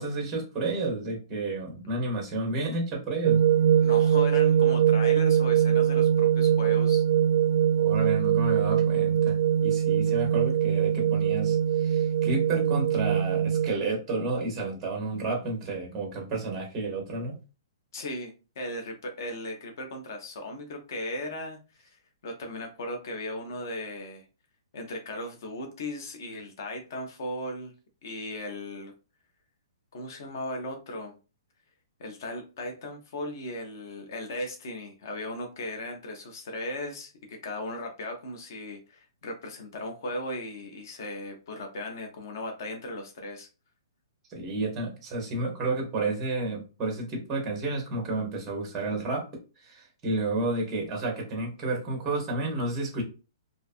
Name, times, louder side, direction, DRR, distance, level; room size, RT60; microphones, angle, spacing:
voice 1, 0.0-3.4 7.8-9.4 9.6-17.4 44.3-49.3 49.6-53.0, right 2 dB, 10° right, 0 dB, 0.5 m, -31 dB
sound 1, 3.2-13.7, right 9 dB, 65° right, 0.4 m, -22 dB
voice 2, 3.8-7.0 17.9-22.0 22.2-24.3 24.7-27.7 28.0-28.9 29.9-31.1 32.0-43.5, left 1 dB, 40° left, 4 dB, 0.5 m, -37 dB
2.5 x 2.2 x 2.4 m, 0.32 s
hypercardioid pair, 180°, 3 cm